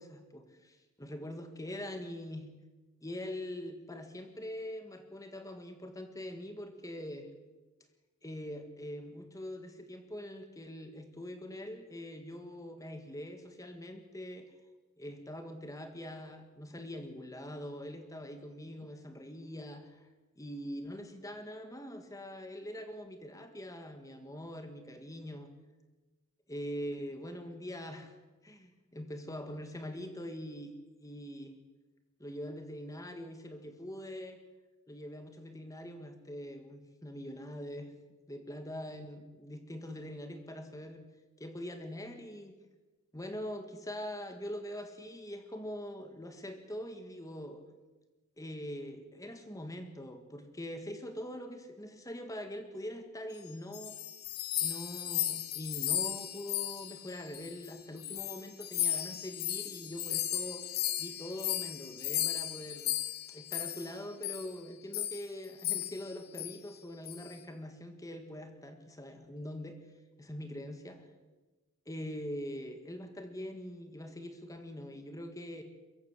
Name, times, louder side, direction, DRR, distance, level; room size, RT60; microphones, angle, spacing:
voice 1, 0.0-2.5 3.0-7.3 8.2-14.5 15.0-20.1 20.4-25.5 26.5-28.2 28.4-30.7 31.0-31.6 32.2-34.4 34.9-37.9 38.3-41.0 41.4-42.5 43.1-47.6 48.4-54.0 54.6-60.7 61.0-62.9 63.3-69.8 70.2-71.1 71.8-75.6, left 1 dB, 15° left, 7 dB, 1.8 m, -43 dB
sound 1, 53.5-57.7 58.0-63.9 64.2-64.5 64.9-65.3 65.6-66.1 66.3-66.5 67.1-67.3, left 11 dB, 45° left, 1.9 m, -35 dB
22.5 x 15.5 x 8.3 m, 1.2 s
head